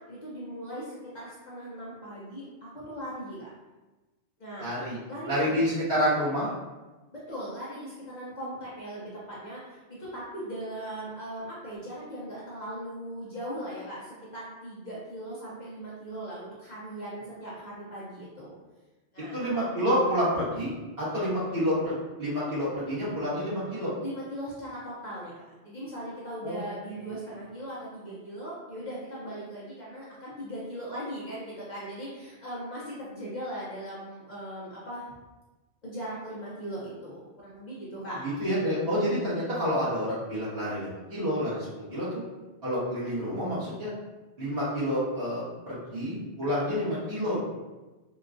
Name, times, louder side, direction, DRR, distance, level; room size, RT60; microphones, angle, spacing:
voice 1, 0.0-3.5 4.4-4.7 5.1-5.7 7.1-18.5 19.1-19.4 24.0-35.1 35.8-38.3, right 1 dB, 45° left, -7 dB, 0.7 m, -39 dB
voice 2, 4.6-5.0 5.3-6.5 19.3-23.9 26.4-26.6 38.2-42.1 42.6-43.9 44.4-47.4, equal, 55° right, -12 dB, 1.8 m, -28 dB
3.8 x 2.3 x 2.5 m, 1.2 s
omnidirectional pair, 1.2 m